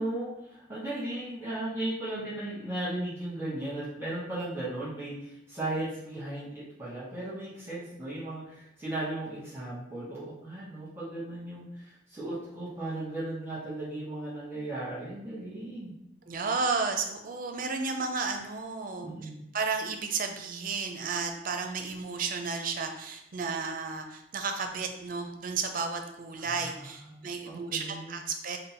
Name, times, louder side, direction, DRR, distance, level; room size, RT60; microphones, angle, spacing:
voice 1, 0.0-15.9 19.0-19.4 26.4-28.2, right 1 dB, 15° right, -9 dB, 1.1 m, -36 dB
voice 2, 16.3-28.6, right 4 dB, 45° right, 5 dB, 0.5 m, -33 dB
3.8 x 2.2 x 4.1 m, 0.82 s
head